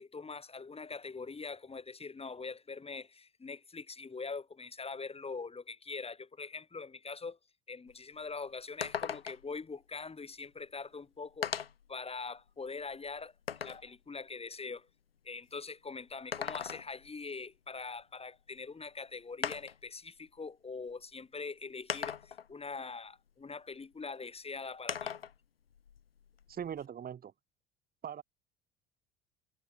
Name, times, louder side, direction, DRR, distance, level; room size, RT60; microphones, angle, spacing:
voice 1, 0.0-7.4 7.7-11.5 11.9-13.3 13.6-14.9 15.2-25.1, left 4 dB, 20° left, 4.2 m, -43 dB
sound 1, 7.9-8.0 8.3-8.4 8.8-9.6 10.6-10.7 11.4-11.9 12.5-13.9 16.1-17.1 18.6-18.7 19.4-19.9 20.9-21.0 21.9-22.5 24.9-25.4 25.7-26.8, left 8 dB, 80° left, 2.6 m, -38 dB
voice 2, 26.5-27.3 28.0-28.2, right 9 dB, 30° right, 1.7 m, -40 dB
figure-of-eight pair, 65°, 29 cm